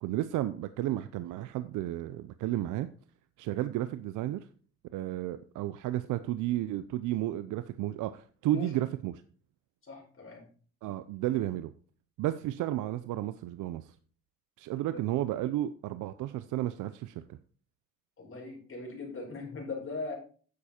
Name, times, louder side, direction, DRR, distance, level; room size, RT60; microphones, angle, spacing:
voice 1, 0.0-2.9 3.4-4.5 4.9-9.2 10.8-11.7 12.2-13.9 14.6-17.4, right 14 dB, 90° right, 12 dB, 0.6 m, -32 dB
voice 2, 9.8-10.5 14.8-15.0 18.2-20.1, left 3 dB, 45° left, 0 dB, 4.8 m, -40 dB
9.6 x 7.1 x 4.3 m, 0.42 s
cardioid pair, 90°, 30 cm